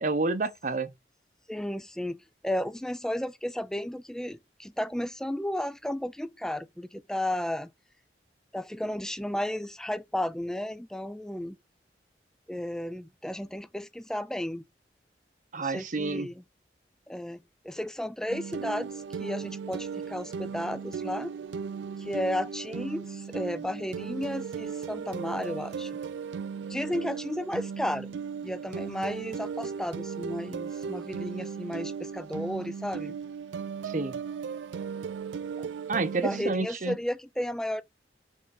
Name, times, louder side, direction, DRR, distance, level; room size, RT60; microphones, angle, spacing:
voice 1, 0.0-0.9 15.5-16.3 33.8-34.1 35.9-37.0, right 3 dB, 45° right, 0.7 m, -29 dB
voice 2, 1.5-7.7 8.5-11.6 12.5-14.6 15.6-16.4 17.1-21.3 22.0-26.0 26.7-33.2 35.6-35.7 36.2-37.8, left 1 dB, 5° left, 0.3 m, -33 dB
sound 1, 18.3-36.5, right 6 dB, 80° right, 0.4 m, -37 dB
5.3 x 3.6 x 5.3 m
head